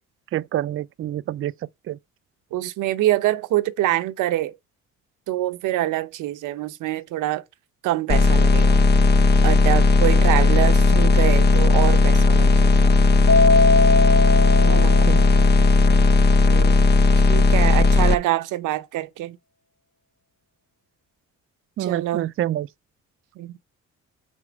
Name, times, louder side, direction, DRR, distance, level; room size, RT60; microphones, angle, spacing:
voice 1, 0.3-1.5 1.9-2.0 14.6-15.2 21.8-22.7, right 12 dB, 45° right, 0.4 m, -27 dB
voice 2, 2.5-4.6 5.3-7.4 7.8-8.8 9.4-13.0 14.7-15.0 16.4-16.8 17.3-19.4 21.8-22.3 23.4-23.6, right 15 dB, 90° right, 0.7 m, -25 dB
sound 1, 8.1-18.1, left 3 dB, 35° left, 0.7 m, -16 dB
Keyboard (musical), 13.3-15.8, left 3 dB, 50° left, 1.0 m, -21 dB
6.3 x 4.3 x 5.0 m
cardioid pair, 90°, 30 cm